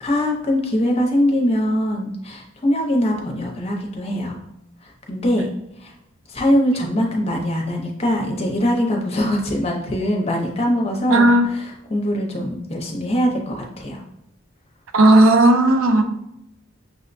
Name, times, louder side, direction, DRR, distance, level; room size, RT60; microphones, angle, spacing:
voice 1, 0.0-4.4 5.1-5.5 5.8-5.9 6.3-14.0, equal, 30° left, 0 dB, 0.7 m, -22 dB
voice 2, 11.1-11.5 14.9-16.0, right 1 dB, 80° right, 5 dB, 0.5 m, -13 dB
6.2 x 2.1 x 2.6 m, 0.81 s
head